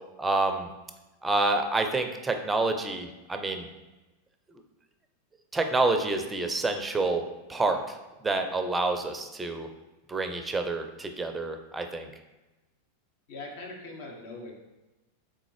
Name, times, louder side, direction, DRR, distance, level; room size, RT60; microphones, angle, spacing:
voice 1, 0.2-0.7 1.2-3.7 5.5-7.2 7.5-7.9 8.2-9.7 10.1-12.1, right 2 dB, 15° right, 6 dB, 0.5 m, -28 dB
voice 2, 13.3-14.5, left 2 dB, 60° left, 0 dB, 1.1 m, -41 dB
3.8 x 3.6 x 3.3 m, 1.1 s
hypercardioid pair, 95°, 0 cm